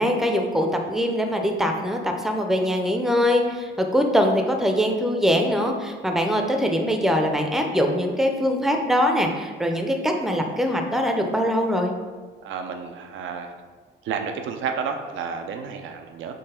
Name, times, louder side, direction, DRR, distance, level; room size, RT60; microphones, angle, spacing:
voice 1, 0.0-11.9, equal, ahead, 3 dB, 0.5 m, -22 dB
voice 2, 12.4-13.5 14.0-16.3, right 6 dB, 80° right, 5 dB, 0.6 m, -31 dB
3.9 x 3.1 x 4.3 m, 1.5 s
cardioid pair, 90°, 20 cm